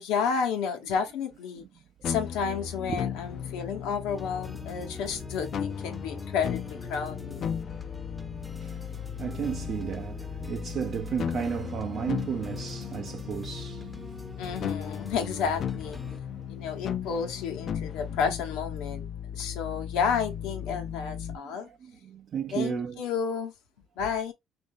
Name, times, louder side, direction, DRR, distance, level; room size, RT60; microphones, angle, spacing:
voice 1, 0.0-1.7 2.0-7.5 14.4-16.2 16.5-19.1 19.3-21.7 22.5-23.5 24.0-24.3, left 6 dB, 80° left, 0.9 m, -31 dB
sound 1, 2.0-21.4, left 8 dB, 60° left, 0.4 m, -36 dB
sound 2, 4.1-16.2, equal, 5° left, 0.6 m, -45 dB
voice 2, 8.4-14.4 16.3-16.8 21.3-23.1, right 7 dB, 55° right, 0.5 m, -34 dB
3.1 x 2.6 x 3.6 m
supercardioid pair, 70°, 0 cm